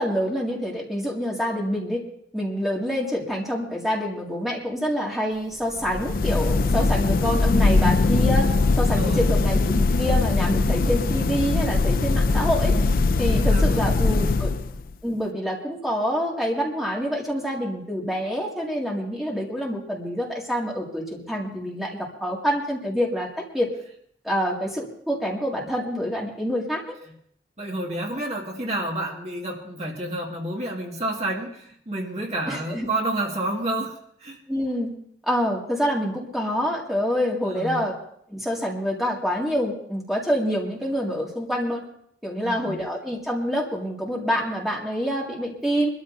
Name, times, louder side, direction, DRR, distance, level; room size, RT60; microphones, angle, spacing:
voice 1, 0.0-2.0 2.3-8.5 8.8-12.7 13.2-14.5 15.0-23.3 23.5-23.7 24.2-27.0 32.5-32.9 34.5-34.9 35.2-37.9 38.3-41.8 42.2-45.9, equal, ahead, -3 dB, 2.1 m, -26 dB
sound 1, 5.8-14.9, left 3 dB, 50° left, 0.4 m, -21 dB
voice 2, 8.8-9.3 13.4-14.4 27.6-34.0 34.2-34.4 37.4-37.8 42.4-42.8, right 1 dB, 35° right, -1 dB, 1.8 m, -30 dB
24.5 x 13.0 x 2.6 m, 0.67 s
head